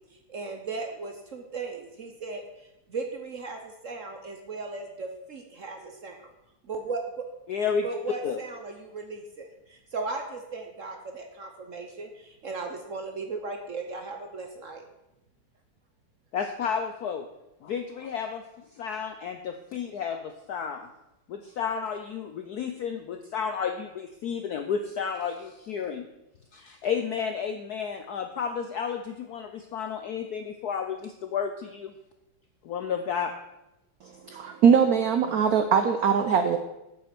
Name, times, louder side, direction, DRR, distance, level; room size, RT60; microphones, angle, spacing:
voice 1, 0.1-6.3 6.6-7.0 7.8-14.8, right 3 dB, 55° right, 4 dB, 0.9 m, -37 dB
voice 2, 7.5-7.9 8.2-8.4 16.3-17.3 17.6-18.4 18.7-20.9 21.3-26.1 26.5-31.9 32.6-33.3, left 7 dB, 75° left, 7 dB, 0.9 m, -32 dB
voice 3, 34.0-36.6, right 7 dB, 80° right, 8 dB, 0.8 m, -22 dB
8.1 x 7.9 x 5.9 m, 0.92 s
omnidirectional pair, 2.4 m